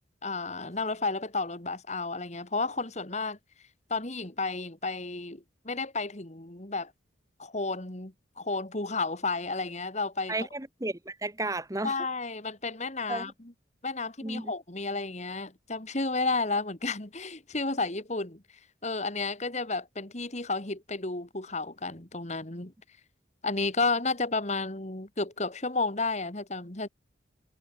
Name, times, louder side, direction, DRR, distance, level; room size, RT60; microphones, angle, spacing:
voice 1, 0.2-3.4 3.9-6.9 7.4-10.3 11.8-13.3 13.8-18.4 18.8-22.7 23.4-26.9, left 3 dB, 35° left, 2.2 m, -32 dB
voice 2, 10.3-11.9 13.1-13.3 14.2-14.5, right 2 dB, 15° right, 1.4 m, -33 dB
head